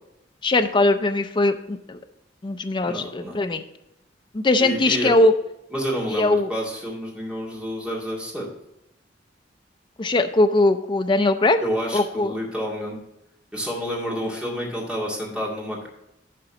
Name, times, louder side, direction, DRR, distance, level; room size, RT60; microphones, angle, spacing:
voice 1, 0.4-2.0 2.4-3.6 4.3-5.3 6.1-6.5 10.0-11.6 11.9-12.4, left 2 dB, 25° left, 8 dB, 0.4 m, -20 dB
voice 2, 2.8-3.3 4.6-5.1 5.7-8.5 11.6-13.0 13.5-15.9, equal, 5° right, -4 dB, 2.2 m, -29 dB
11.0 x 3.9 x 6.0 m, 0.86 s
head